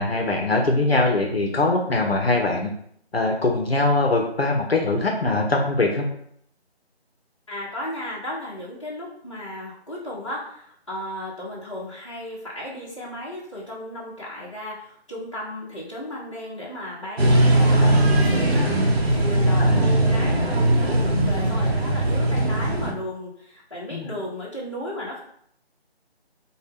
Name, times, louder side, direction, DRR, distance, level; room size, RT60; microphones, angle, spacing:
voice 1, 0.0-2.7 3.1-6.1 17.7-18.1 19.6-19.8 23.9-24.1, left 2 dB, 65° left, 1 dB, 0.7 m, -22 dB
voice 2, 7.5-25.2, left 1 dB, 25° left, -8 dB, 1.0 m, -35 dB
sound 1, 17.2-22.9, right 1 dB, 70° right, 0.9 m, -19 dB
4.5 x 2.2 x 3.4 m, 0.67 s
figure-of-eight pair, 175°, 33 cm